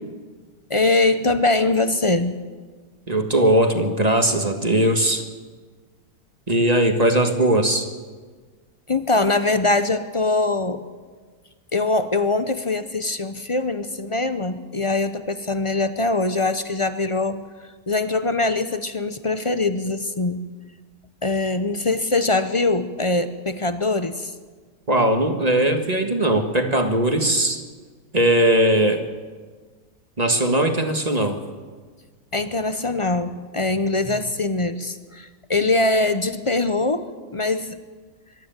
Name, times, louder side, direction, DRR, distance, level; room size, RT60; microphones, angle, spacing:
voice 1, 0.7-2.4 8.9-10.8 11.7-17.4 17.9-20.4 21.2-24.3 32.3-37.8, left 2 dB, 30° left, 11 dB, 0.6 m, -22 dB
voice 2, 3.1-5.2 6.5-7.9 24.9-27.6 28.1-29.0 30.2-31.4 34.0-34.1, right 1 dB, 25° right, 6 dB, 1.5 m, -19 dB
23.5 x 12.5 x 9.1 m, 1.5 s
omnidirectional pair, 1.6 m